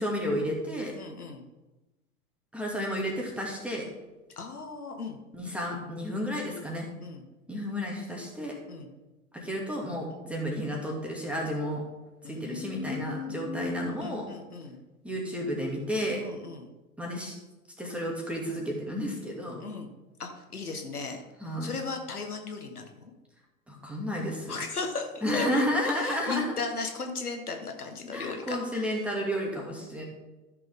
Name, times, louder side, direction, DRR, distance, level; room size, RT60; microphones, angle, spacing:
voice 1, 0.0-0.9 2.5-3.9 5.3-6.9 7.5-8.6 9.3-11.8 12.2-14.3 15.0-16.2 17.0-17.3 17.8-19.6 21.4-21.7 23.7-24.6 25.2-26.4 28.1-30.1, equal, 5° right, -1 dB, 2.3 m, -31 dB
voice 2, 0.9-1.4 4.4-5.2 7.0-7.2 8.7-8.9 12.2-14.8 16.2-16.7 19.6-19.9 20.2-21.2 21.6-23.1 24.5-25.6 26.0-28.9, left 4 dB, 80° left, 4 dB, 1.4 m, -37 dB
13.5 x 6.8 x 3.7 m, 1.1 s
figure-of-eight pair, 90°, 44 cm